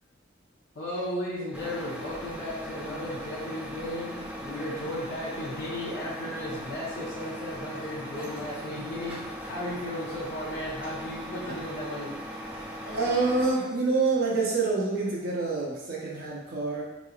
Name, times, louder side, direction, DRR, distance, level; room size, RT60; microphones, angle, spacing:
voice 1, 0.7-9.2 9.4-12.1, left 1 dB, 60° left, -7 dB, 0.7 m, -35 dB
Truck, 1.5-13.5, equal, 5° right, 0.4 m, -39 dB
voice 2, 12.8-16.8, right 3 dB, 50° right, -4 dB, 0.6 m, -27 dB
3.9 x 3.0 x 2.4 m, 1.0 s
head